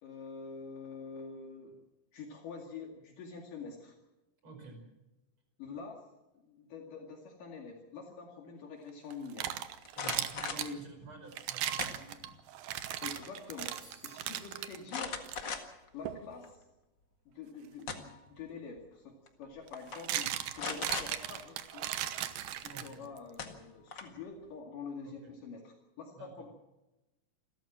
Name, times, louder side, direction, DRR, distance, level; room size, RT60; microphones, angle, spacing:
voice 1, 0.0-1.8 2.1-4.0 5.6-6.0 6.3-9.6 10.6-10.8 13.0-13.8 14.0-15.2 15.9-16.6 17.3-21.9 22.6-26.5, left 5 dB, 70° left, 1 dB, 3.8 m, -46 dB
voice 2, 4.4-4.8 9.9-12.2 22.7-23.1 25.0-25.3 26.2-26.5, right 4 dB, 35° right, 3 dB, 6.1 m, -50 dB
sound 1, 9.1-10.7 11.3-14.8 15.2-15.4 16.1-16.3 18.4-18.5 19.7-23.2, right 12 dB, 90° right, 2.8 m, -37 dB
sound 2, 9.9-10.7 11.8-12.4 12.8-13.3 13.6-13.7 14.9-15.9 16.4-16.5 17.5-18.3 19.3-19.4 19.7-20.0 20.6-21.1 22.8-22.9 23.4-24.2, left 5 dB, 40° left, 2.0 m, -39 dB
sound 3, 13.8-14.4, right 3 dB, 65° right, 6.3 m, -57 dB
28.5 x 13.5 x 7.5 m, 1.0 s
omnidirectional pair, 4.0 m